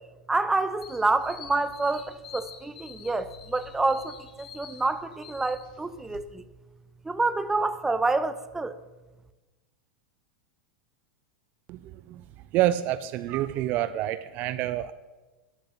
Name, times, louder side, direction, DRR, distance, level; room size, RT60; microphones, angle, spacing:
voice 1, 0.3-6.4 7.0-8.8, right 3 dB, 10° right, 1.0 m, -28 dB
sound 1, 0.8-6.2, left 7 dB, 60° left, 2.6 m, -47 dB
voice 2, 11.7-12.2 12.5-14.9, right 13 dB, 40° right, 0.7 m, -28 dB
14.5 x 11.5 x 8.0 m
figure-of-eight pair, 90°, 5 cm